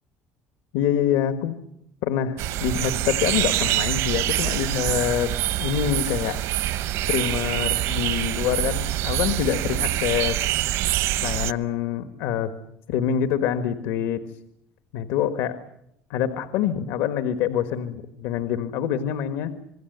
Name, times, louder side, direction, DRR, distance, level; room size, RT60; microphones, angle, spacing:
voice 1, 0.7-1.6 2.0-5.3 5.6-6.4 7.1-10.5 11.2-12.5 12.9-14.2 14.9-15.6 16.1-19.5, left 9 dB, 90° left, 9 dB, 1.5 m, -25 dB
sound 1, 2.4-11.5, right 14 dB, 70° right, 0.9 m, -25 dB
27.0 x 21.5 x 8.0 m, 0.80 s
cardioid pair, 150°, 5 cm